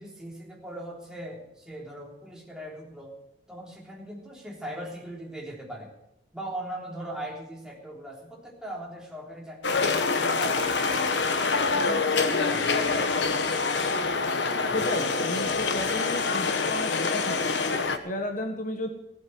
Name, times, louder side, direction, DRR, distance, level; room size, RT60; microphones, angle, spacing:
voice 1, 0.0-3.2 3.5-5.9 6.3-11.2 11.6-13.1, right 1 dB, 5° right, -2 dB, 3.5 m, -40 dB
sound 1, 9.6-18.0, left 4 dB, 75° left, 1.2 m, -26 dB
voice 2, 14.7-17.6 18.0-18.9, left 1 dB, 45° left, 4 dB, 1.5 m, -33 dB
16.0 x 7.9 x 7.7 m, 0.86 s
head